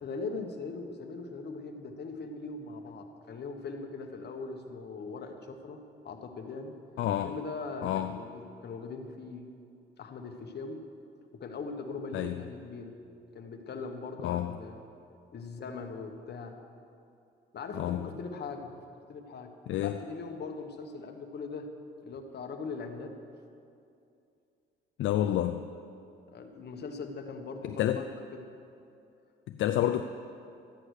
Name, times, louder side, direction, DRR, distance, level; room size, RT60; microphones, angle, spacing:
voice 1, 0.0-6.8 7.2-9.5 10.0-10.8 11.3-13.0 13.3-14.8 15.3-16.6 17.5-18.7 19.1-21.7 22.0-23.1 26.3-28.5, left 4 dB, 55° left, 5 dB, 1.4 m, -40 dB
voice 2, 7.0-7.3 7.8-8.2 12.1-12.3 14.2-14.5 17.7-18.0 19.7-20.0 25.0-25.7 27.7-28.0 29.5-30.0, left 12 dB, 75° left, 8 dB, 0.5 m, -29 dB
13.0 x 9.8 x 6.5 m, 2.5 s
cardioid pair, 90°, 20 cm